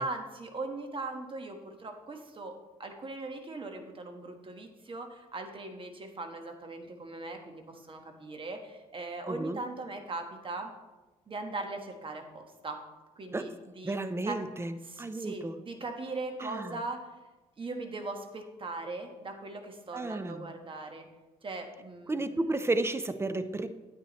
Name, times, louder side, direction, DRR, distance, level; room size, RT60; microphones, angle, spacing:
voice 1, 0.0-10.7 11.3-12.8 13.2-14.0 14.2-14.4 14.8-17.1 17.6-21.1 21.4-22.6, right 3 dB, 40° right, 5 dB, 1.5 m, -40 dB
voice 2, 9.3-9.6 13.3-13.5 13.8-15.6 16.4-16.8 19.9-20.5 22.1-23.7, right 2 dB, 20° right, 11 dB, 0.7 m, -32 dB
9.3 x 9.1 x 3.1 m, 1.2 s
supercardioid pair, 65°, 14 cm